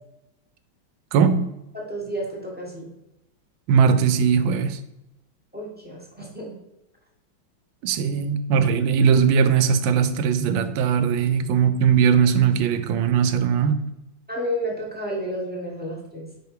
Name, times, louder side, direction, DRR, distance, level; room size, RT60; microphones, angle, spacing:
voice 1, 1.1-1.4 3.7-4.8 7.8-13.8, right 7 dB, 80° right, 11 dB, 1.4 m, -19 dB
voice 2, 1.7-2.9 5.5-6.6 14.3-16.3, equal, 5° right, -3 dB, 1.1 m, -31 dB
5.0 x 4.7 x 4.8 m, 0.92 s
omnidirectional pair, 2.2 m